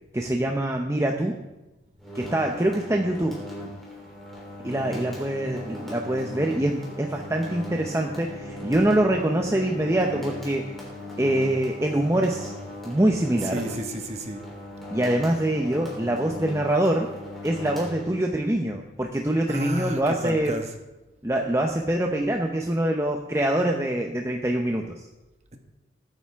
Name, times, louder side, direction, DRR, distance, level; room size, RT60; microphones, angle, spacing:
voice 1, 0.1-1.3 2.1-3.4 4.6-10.7 11.2-12.5 12.8-13.6 14.9-17.1 17.4-20.6 21.2-25.1, right 1 dB, 15° right, 2 dB, 0.7 m, -24 dB
sound 1, 2.0-18.5, left 1 dB, ahead, 3.4 m, -39 dB
Bowed string instrument, 6.6-10.5, left 2 dB, 25° left, 1.7 m, -40 dB
voice 2, 13.5-14.4 19.5-20.6, right 1 dB, 35° right, 4 dB, 1.4 m, -31 dB
21.5 x 9.2 x 3.5 m, 1.0 s
head